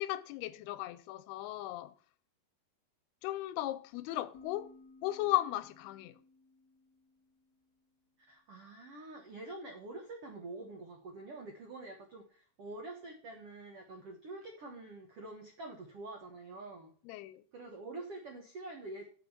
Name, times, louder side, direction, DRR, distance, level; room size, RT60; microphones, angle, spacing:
voice 1, 0.0-1.9 3.2-4.7 5.0-6.2 17.1-17.4, left 16 dB, 80° left, 2.6 m, -36 dB
sound 1, 4.3-7.9, left 3 dB, 65° left, 1.9 m, -59 dB
voice 2, 8.3-16.9 17.5-19.1, right 2 dB, 75° right, 1.3 m, -46 dB
9.3 x 5.5 x 7.1 m
omnidirectional pair, 4.7 m